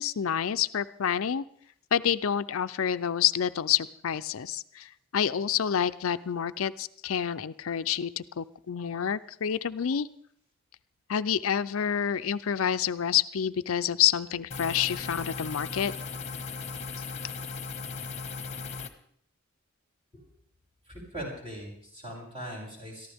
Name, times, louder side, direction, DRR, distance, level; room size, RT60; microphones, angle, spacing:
voice 1, 0.0-1.4 1.9-10.1 11.1-15.9, left 8 dB, 70° left, 13 dB, 0.5 m, -28 dB
sound 1, 14.5-18.9, left 4 dB, 30° left, 1.1 m, -37 dB
voice 2, 20.9-23.1, equal, 30° right, -4 dB, 6.3 m, -40 dB
22.5 x 14.0 x 3.5 m, 0.64 s
head